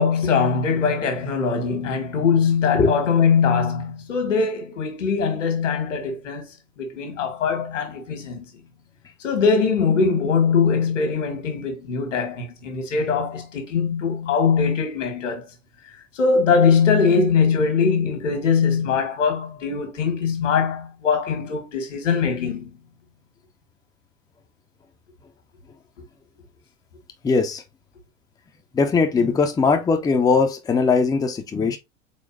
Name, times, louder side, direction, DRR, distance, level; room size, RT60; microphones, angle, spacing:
voice 1, 0.0-6.5 6.8-8.5 9.2-15.5 16.1-22.8, left 5 dB, 70° left, 1.6 m, -21 dB
voice 2, 27.2-27.6 28.7-31.8, left 4 dB, 10° left, 0.5 m, -20 dB
4.2 x 4.1 x 2.5 m
figure-of-eight pair, 80°, 39 cm